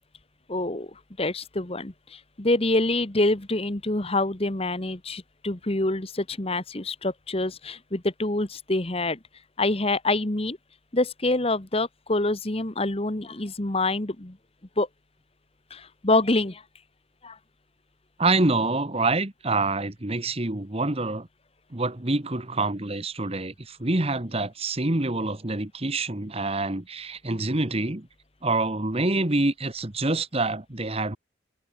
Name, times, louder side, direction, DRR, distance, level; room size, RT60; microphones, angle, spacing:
voice 1, 0.5-9.2 9.6-10.6 10.9-14.4 14.8-14.9 15.7-16.6 17.2-17.4, left 2 dB, 30° left, 1.3 m, -26 dB
voice 2, 18.2-21.3 21.7-28.1 28.4-31.2, right 2 dB, 30° right, 1.4 m, -26 dB
head